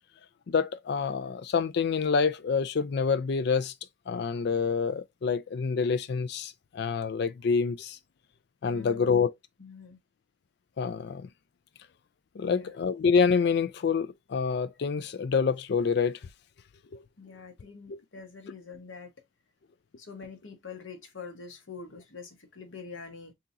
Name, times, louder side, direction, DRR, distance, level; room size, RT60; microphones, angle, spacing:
voice 1, 0.5-3.7 4.1-8.0 8.6-9.3 10.8-11.3 12.4-16.2 16.9-17.0 17.9-18.0, left 5 dB, 55° left, 0.4 m, -27 dB
voice 2, 8.7-9.3 9.6-10.0 12.4-12.8 17.2-19.1 20.0-23.3, left 5 dB, 80° left, 1.1 m, -45 dB
3.8 x 2.8 x 2.7 m
head